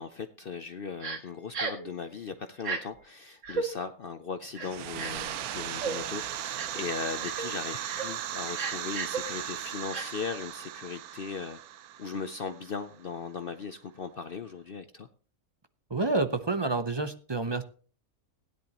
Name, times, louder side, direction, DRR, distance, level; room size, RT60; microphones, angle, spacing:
voice 1, 0.0-11.6 12.0-15.1, left 5 dB, 55° left, 9 dB, 0.7 m, -38 dB
Crying sobbing, 1.0-1.2 1.5-1.9 2.6-2.8 3.4-3.7 4.5-5.3 5.8-6.0 6.6-6.8 7.2-7.5 7.8-8.1 8.5-9.2 9.9-10.1, right 4 dB, 55° right, 1.9 m, -33 dB
sound 1, 4.6-13.1, right 11 dB, 85° right, 1.2 m, -37 dB
sound 2, 7.7-8.9 9.2-9.6 9.9-10.5, left 1 dB, 10° left, 3.2 m, -52 dB
voice 2, 15.9-17.6, right 3 dB, 30° right, 9 dB, 0.5 m, -28 dB
16.5 x 10.5 x 2.9 m, 0.41 s
omnidirectional pair, 1.5 m